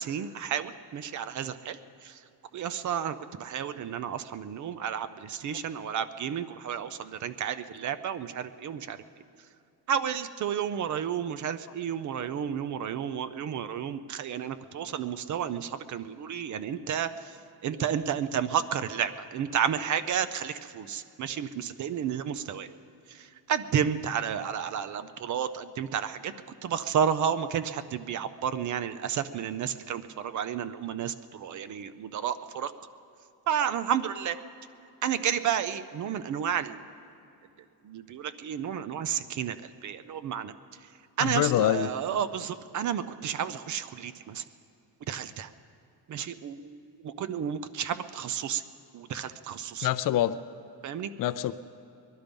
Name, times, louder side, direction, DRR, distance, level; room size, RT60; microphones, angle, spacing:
voice 1, 0.0-2.2 2.5-9.0 9.9-17.3 17.6-22.7 23.1-26.3 26.6-32.7 33.5-34.4 35.0-36.8 37.8-40.5 41.2-44.4 45.1-45.5 46.1-48.6 48.9-49.9 50.8-51.1, right 8 dB, 45° right, 13 dB, 0.5 m, -31 dB
voice 2, 41.2-41.9 49.8-50.4 51.2-51.5, left 12 dB, 55° left, 13 dB, 0.4 m, -25 dB
21.0 x 11.5 x 5.2 m, 2.7 s
cardioid pair, 175°, 41 cm